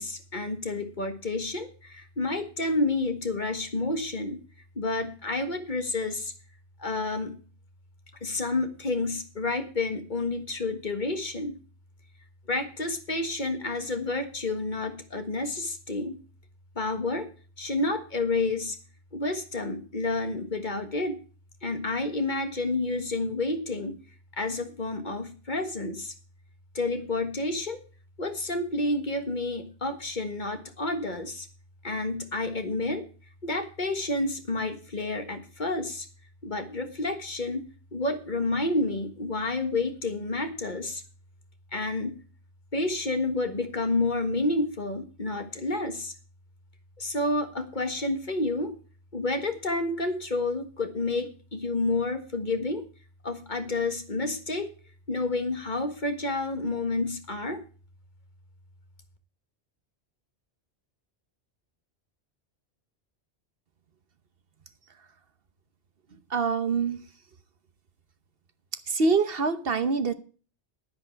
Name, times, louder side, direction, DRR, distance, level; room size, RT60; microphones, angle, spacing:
voice 1, 0.0-4.4 4.7-6.3 6.8-7.4 8.2-11.6 12.5-16.2 16.7-17.3 17.6-18.8 19.1-21.2 21.6-24.0 24.4-26.1 26.7-27.8 28.2-31.5 31.8-33.0 33.4-36.1 36.4-37.6 37.9-41.0 41.7-42.2 42.7-46.1 47.0-48.7 49.1-52.8 53.2-54.7 55.1-57.6, left 2 dB, 45° left, 7 dB, 1.6 m, -29 dB
voice 2, 66.3-67.0 68.9-70.1, right 4 dB, 60° right, 11 dB, 1.1 m, -25 dB
10.5 x 10.5 x 4.5 m, 0.38 s
omnidirectional pair, 1.1 m